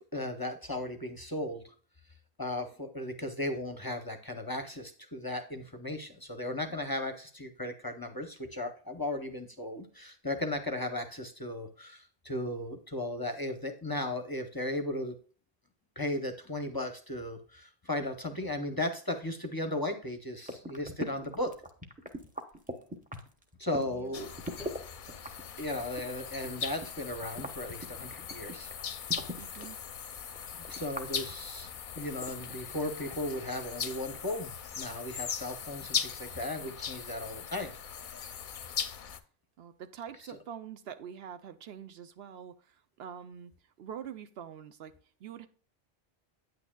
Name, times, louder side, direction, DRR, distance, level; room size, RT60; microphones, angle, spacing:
voice 1, 0.1-1.6 2.4-15.2 16.0-21.5 23.6-24.3 25.6-28.7 30.7-31.7 31.9-37.7, left 1 dB, 25° left, 0.7 m, -36 dB
sound 1, 20.4-24.8 25.1-29.7 30.1-32.8 33.0-33.2, equal, 10° right, 0.8 m, -41 dB
sound 2, 21.5-32.4, left 1 dB, 35° right, 3.9 m, -61 dB
voice 2, 23.9-24.3 29.3-29.8 39.6-43.5 43.8-44.9 45.2-45.5, right 8 dB, 75° right, 0.8 m, -45 dB
sound 3, 24.1-39.2, left 7 dB, 55° left, 0.7 m, -39 dB
9.2 x 8.7 x 2.2 m
omnidirectional pair, 1.1 m